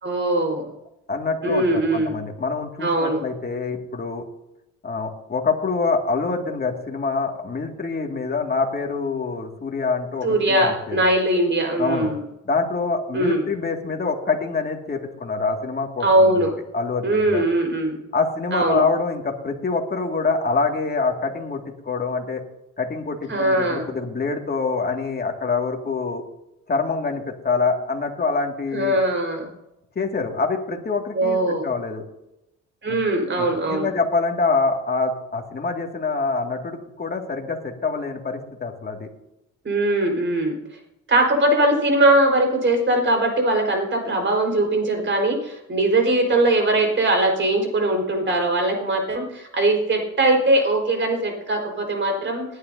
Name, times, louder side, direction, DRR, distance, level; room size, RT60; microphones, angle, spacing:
voice 1, 0.0-0.7 1.4-2.2 2.8-3.2 10.2-12.2 13.1-13.4 16.0-16.5 17.0-18.0 18.5-18.8 23.3-23.9 28.7-29.5 31.1-31.7 32.8-33.9 39.6-40.6 41.1-52.5, right 1 dB, 40° right, 3 dB, 4.4 m, -20 dB
voice 2, 1.1-4.2 4.8-11.1 11.8-12.1 12.4-16.4 16.7-17.5 18.1-22.4 22.8-26.2 26.7-29.0 30.0-32.1 32.9-33.0 33.4-39.1, left 4 dB, 30° left, 2 dB, 2.2 m, -25 dB
20.0 x 10.0 x 2.7 m, 0.87 s
cardioid pair, 90°, 30 cm